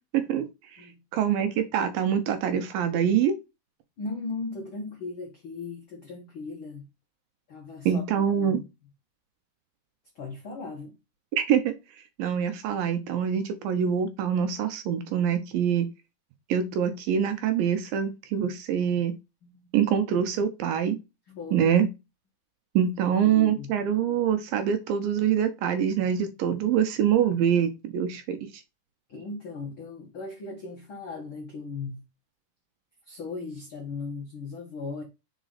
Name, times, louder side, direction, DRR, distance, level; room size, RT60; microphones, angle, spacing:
voice 1, 0.1-0.5 1.1-3.4 7.9-8.6 11.4-11.7 12.2-15.9 16.5-19.1 19.7-21.0 21.5-21.9 22.8-28.4, right 8 dB, 75° right, 2.2 m, -25 dB
voice 2, 4.0-6.8 7.5-8.0 8.4-8.7 10.1-10.9 19.4-19.7 21.3-21.7 23.2-23.7 26.0-26.1 29.1-32.0 33.1-35.0, left 3 dB, 80° left, 1.1 m, -37 dB
5.0 x 5.0 x 3.9 m
omnidirectional pair, 4.6 m